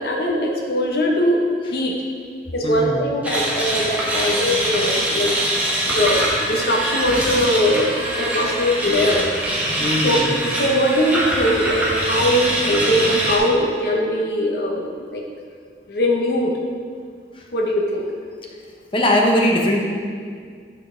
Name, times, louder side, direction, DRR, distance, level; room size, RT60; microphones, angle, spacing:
voice 1, 0.0-2.0 2.5-5.3 5.9-9.3 10.0-10.2 10.5-15.2 15.9-16.5 17.5-18.0, equal, 60° left, -1 dB, 0.8 m, -21 dB
voice 2, 2.6-3.0 9.8-10.3 18.9-19.8, left 1 dB, 30° left, 0 dB, 0.9 m, -19 dB
sound 1, 3.2-13.4, right 1 dB, 10° right, 1.0 m, -23 dB
8.6 x 5.3 x 3.8 m, 2.1 s
head